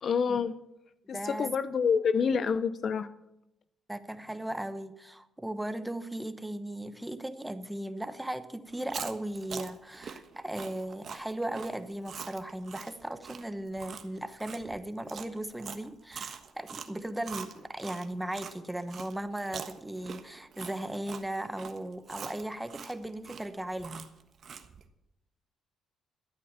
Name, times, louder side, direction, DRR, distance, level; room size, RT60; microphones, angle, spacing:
voice 1, 0.0-0.5 1.1-3.1, left 6 dB, 55° left, 14 dB, 0.7 m, -27 dB
voice 2, 1.1-1.5 3.9-24.1, right 1 dB, 10° right, 10 dB, 1.1 m, -37 dB
Chewing mastication, 8.7-18.5 18.9-24.8, right 7 dB, 55° right, 1.3 m, -43 dB
13.0 x 8.6 x 7.3 m, 0.85 s
cardioid pair, 90°, 0 cm